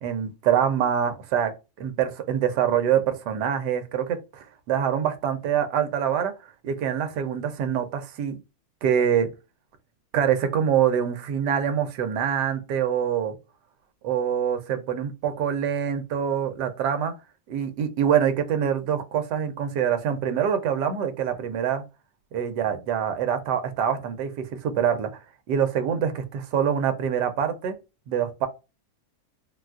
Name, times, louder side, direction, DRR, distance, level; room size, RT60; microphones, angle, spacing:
voice 1, 0.0-6.3 6.6-8.4 8.8-9.3 10.1-13.3 14.0-17.1 17.5-21.8 22.3-25.2 25.5-27.8 28.1-28.5, right 8 dB, 70° right, 1.2 m, -25 dB
4.0 x 2.3 x 2.3 m
omnidirectional pair, 2.1 m